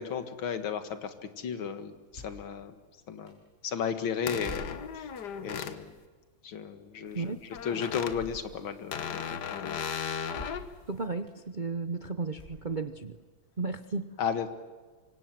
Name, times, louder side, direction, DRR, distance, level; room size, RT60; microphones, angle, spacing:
voice 1, 0.0-2.8 3.1-3.4 3.6-5.1 5.4-5.9 6.4-9.8 14.2-14.5, left 7 dB, 70° left, 9 dB, 2.4 m, -34 dB
sound 1, 2.1-2.5 3.3-3.4 4.4-5.1 5.7-5.9 8.1-8.5 9.2-9.3 10.3-10.8 11.3-11.4 12.3-12.9, left 1 dB, 30° left, 6.5 m, -46 dB
sound 2, 4.3-5.8 7.5-8.1 8.9-10.7, left 7 dB, 55° left, 1.7 m, -36 dB
voice 2, 10.9-13.2 13.6-14.2, right 4 dB, 55° right, 9 dB, 0.5 m, -34 dB
26.0 x 25.0 x 7.7 m, 1.4 s
omnidirectional pair, 2.3 m